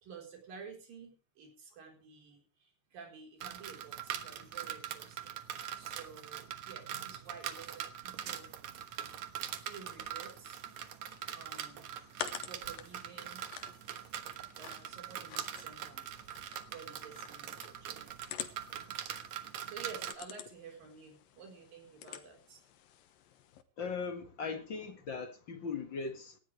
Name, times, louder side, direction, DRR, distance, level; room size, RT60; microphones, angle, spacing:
voice 1, 0.0-5.4 5.7-8.5 9.5-10.6 11.4-11.9 12.4-13.5 14.6-16.1 16.7-18.2 19.6-22.6, right 5 dB, 80° right, 5.9 m, -51 dB
sound 1, 3.4-20.2, right 10 dB, 65° right, 2.4 m, -43 dB
sound 2, 11.1-23.6, left 10 dB, 85° left, 2.9 m, -49 dB
voice 2, 23.8-26.4, left 5 dB, 40° left, 2.1 m, -39 dB
18.0 x 15.0 x 3.3 m
omnidirectional pair, 3.9 m